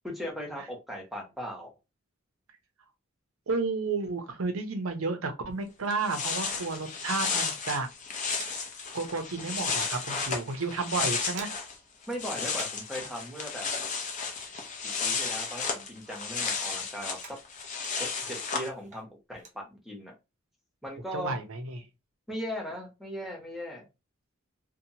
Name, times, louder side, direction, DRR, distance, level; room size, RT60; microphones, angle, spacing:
voice 1, 0.0-1.7 12.1-13.7 14.8-17.4 18.0-20.1 20.8-21.4 22.3-23.9, equal, ahead, 0.8 m, -38 dB
voice 2, 3.5-7.9 8.9-11.5 18.3-18.4 21.1-21.8, right 3 dB, 85° right, 0.7 m, -32 dB
sound 1, 5.6-5.7 5.9-11.8 12.0-18.7, left 5 dB, 35° left, 0.6 m, -33 dB
sound 2, 6.2-7.7 7.9-9.1 9.3-10.1 10.5-10.7 11.0-11.8 12.1-13.0 13.2-15.6 15.9-18.2 18.7-19.6, right 5 dB, 35° right, 0.5 m, -50 dB
2.8 x 2.2 x 2.7 m
head